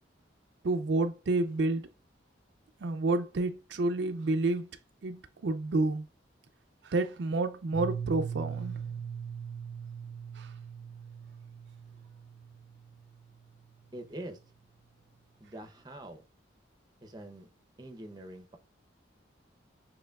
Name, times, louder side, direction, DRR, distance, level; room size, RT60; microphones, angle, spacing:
voice 1, 0.6-1.9 2.8-4.7 5.0-6.0 6.8-8.8 10.4-10.5, right 2 dB, 65° right, 0.4 m, -29 dB
Piano, 7.7-13.4, right 7 dB, 90° left, 2.1 m, -40 dB
voice 2, 13.9-14.4 15.4-16.2 17.0-17.5 17.8-18.6, right 1 dB, 20° right, 0.6 m, -44 dB
6.7 x 3.0 x 2.3 m
head